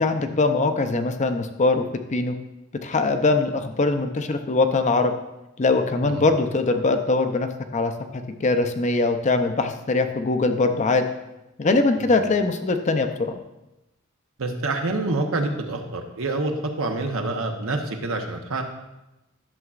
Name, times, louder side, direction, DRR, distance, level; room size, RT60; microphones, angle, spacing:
voice 1, 0.0-2.4 2.8-5.1 5.6-7.9 8.4-11.0 11.6-13.3, left 3 dB, 35° left, 8 dB, 0.5 m, -22 dB
voice 2, 14.4-18.6, right 2 dB, 80° right, 4 dB, 0.9 m, -27 dB
11.0 x 6.9 x 2.4 m, 0.95 s
head